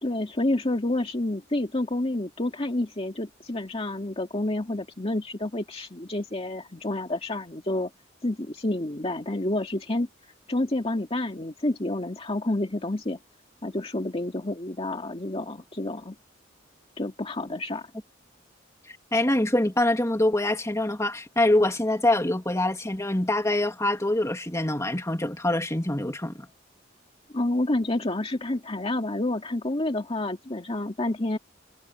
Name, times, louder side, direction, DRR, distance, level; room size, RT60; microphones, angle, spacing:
voice 1, 0.0-7.9 8.2-10.1 10.5-13.2 13.6-16.2 17.0-17.9 27.3-31.4, left 1 dB, 30° left, 2.1 m, -29 dB
voice 2, 19.1-26.5, left 1 dB, 15° left, 2.7 m, -24 dB
head